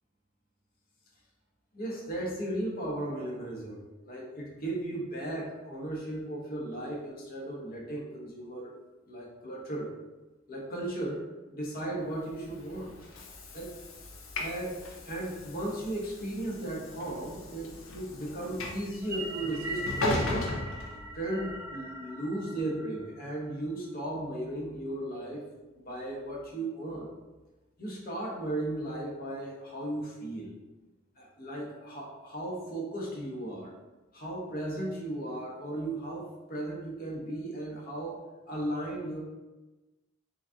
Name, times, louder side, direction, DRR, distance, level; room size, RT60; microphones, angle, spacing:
voice 1, 1.7-8.7 9.1-9.9 10.5-11.2 11.5-13.3 13.5-13.7 14.4-20.4 21.1-25.5 25.8-27.1 27.8-30.5 31.2-33.7 34.1-39.2, right 1 dB, 45° left, -4 dB, 0.9 m, -36 dB
Train / Sliding door, 12.3-21.6, left 1 dB, 65° left, 0.6 m, -37 dB
sound 1, 18.9-23.5, right 1 dB, 10° right, 0.5 m, -40 dB
3.9 x 2.6 x 3.5 m, 1.1 s
head